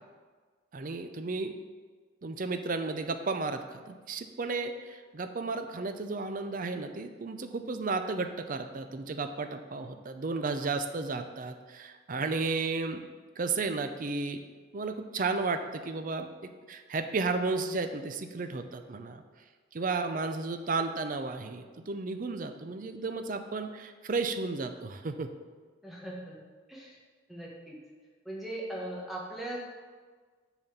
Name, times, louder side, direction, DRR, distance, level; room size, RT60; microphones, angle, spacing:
voice 1, 0.7-1.6 2.2-13.0 13.4-14.4 14.7-16.3 16.7-19.2 19.7-25.3, right 3 dB, 45° right, 8 dB, 0.5 m, -33 dB
voice 2, 25.8-26.4 26.7-27.0 27.3-27.8 28.2-29.6, right 1 dB, ahead, -4 dB, 1.5 m, -39 dB
7.0 x 4.1 x 6.7 m, 1.5 s
head